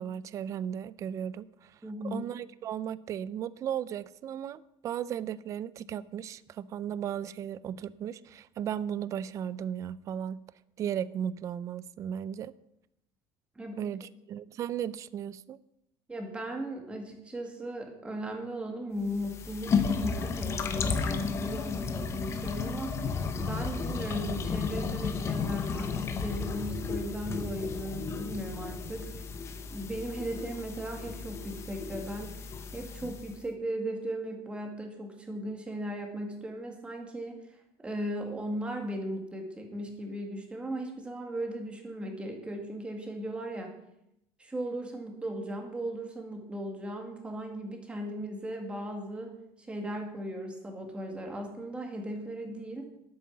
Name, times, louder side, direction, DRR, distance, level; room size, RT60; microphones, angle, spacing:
voice 1, 0.0-10.4 10.8-12.5 13.8-15.6, right 9 dB, 30° right, 18 dB, 0.4 m, -36 dB
voice 2, 1.8-2.3 13.6-13.8 16.1-29.2 29.7-32.3 32.7-37.4 37.8-43.7 44.4-49.3 49.6-52.9, right 1 dB, 10° right, 2 dB, 1.9 m, -37 dB
sound 1, 19.0-33.4, left 5 dB, 25° left, 0.9 m, -33 dB
11.0 x 8.5 x 7.1 m, 0.82 s
cardioid pair, 175°, 11 cm